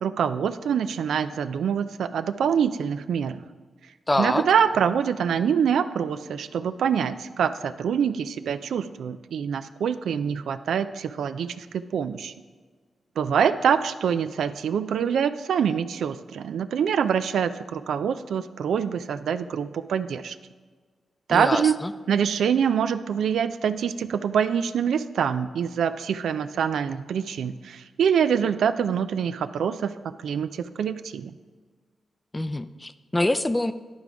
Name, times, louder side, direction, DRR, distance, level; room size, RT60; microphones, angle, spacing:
voice 1, 0.0-3.4 4.2-11.7 11.9-12.3 13.2-20.4 21.3-21.8 22.1-29.9 30.2-31.3, right 7 dB, 85° right, 11 dB, 0.3 m, -25 dB
voice 2, 4.1-4.4 21.3-21.9 32.3-33.7, left 1 dB, 20° left, 12 dB, 0.4 m, -25 dB
11.0 x 3.8 x 4.7 m, 1.4 s
cardioid pair, 70°, 0 cm